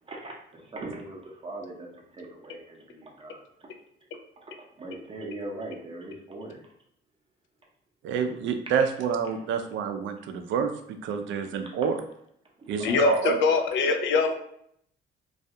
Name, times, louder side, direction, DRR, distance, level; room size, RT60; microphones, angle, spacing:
voice 1, 0.0-3.7 4.4-6.7 9.3-9.4 11.1-11.2 11.8-11.9 12.6-13.2, right 2 dB, 25° right, -1 dB, 0.6 m, -40 dB
voice 2, 8.0-10.7 11.0-11.9 12.7-13.4, right 7 dB, 75° right, 7 dB, 0.4 m, -27 dB
voice 3, 12.8-14.3, left 5 dB, 75° left, 6 dB, 0.4 m, -23 dB
2.3 x 2.2 x 2.7 m, 0.70 s
cardioid pair, 90°, 20 cm